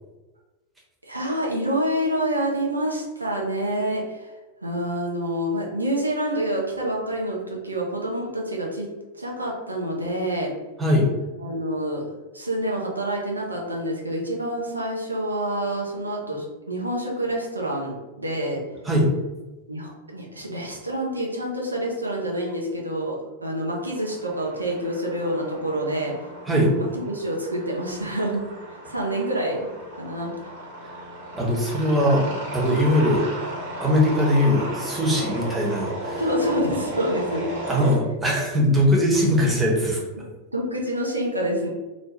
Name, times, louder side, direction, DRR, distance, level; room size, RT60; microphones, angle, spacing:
voice 1, 1.0-4.3 4.6-8.9 9.2-10.5 11.4-12.0 12.3-17.9 18.2-18.6 19.7-26.1 26.8-28.4 28.9-29.6 30.0-30.4 36.2-37.4 40.5-41.7, right 1 dB, 80° right, -2 dB, 0.5 m, -27 dB
sound 1, 23.8-38.0, right 1 dB, 60° right, 0.9 m, -34 dB
voice 2, 31.3-32.3 32.5-33.3 33.8-36.2 37.7-40.0, equal, 10° right, -3 dB, 0.8 m, -20 dB
2.5 x 2.1 x 3.1 m, 1.1 s
figure-of-eight pair, 90°, 0 cm